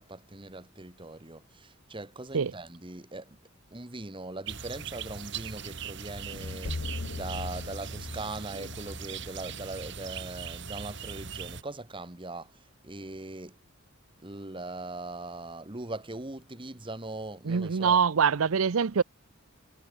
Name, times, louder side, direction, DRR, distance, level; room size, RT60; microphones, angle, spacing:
voice 1, 0.0-3.4 3.7-13.6 14.2-18.0, right 2 dB, 25° right, 1.5 m, -40 dB
sound 1, 4.5-11.6, right 6 dB, 60° right, 3.6 m, -40 dB
sound 2, 6.2-10.3, left 3 dB, 55° left, 0.7 m, -39 dB
voice 2, 17.4-19.0, right 6 dB, 90° right, 0.6 m, -24 dB
head